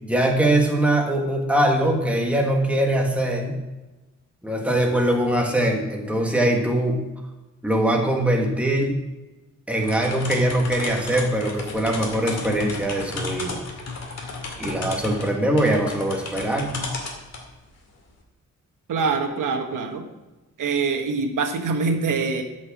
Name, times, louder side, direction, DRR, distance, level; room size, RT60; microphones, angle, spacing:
voice 1, 0.0-3.6 4.4-7.0 7.6-9.0 9.7-13.6 14.6-16.8, right 1 dB, 5° right, 0 dB, 1.5 m, -22 dB
sound 1, 9.8-17.5, left 3 dB, 55° left, 2.2 m, -33 dB
voice 2, 18.9-20.0 20.6-22.4, right 4 dB, 85° right, 5 dB, 1.5 m, -24 dB
12.5 x 6.1 x 6.0 m, 1.1 s
wide cardioid pair, 170°, 31 cm